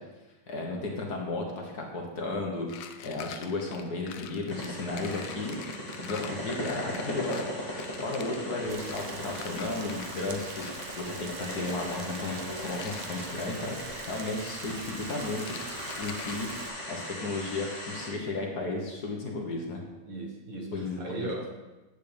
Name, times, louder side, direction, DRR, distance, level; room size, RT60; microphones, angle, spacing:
voice 1, 0.5-5.6 6.0-7.5 8.0-10.6 11.0-15.6 16.0-16.5 16.9-19.8 20.7-21.3, left 2 dB, 55° left, 0 dB, 1.7 m, -34 dB
sound 1, 2.6-10.2 10.5-10.9 12.4-13.1 15.4-16.5, left 8 dB, 80° left, 0.7 m, -46 dB
sound 2, 4.5-18.1, left 1 dB, 20° left, 1.8 m, -38 dB
Rain, 8.7-16.7, right 5 dB, 85° right, 0.5 m, -44 dB
voice 2, 12.3-12.7 14.9-15.0 20.1-21.5, right 2 dB, 50° right, 0 dB, 1.8 m, -38 dB
10.0 x 8.4 x 3.4 m, 1.1 s
omnidirectional pair, 2.1 m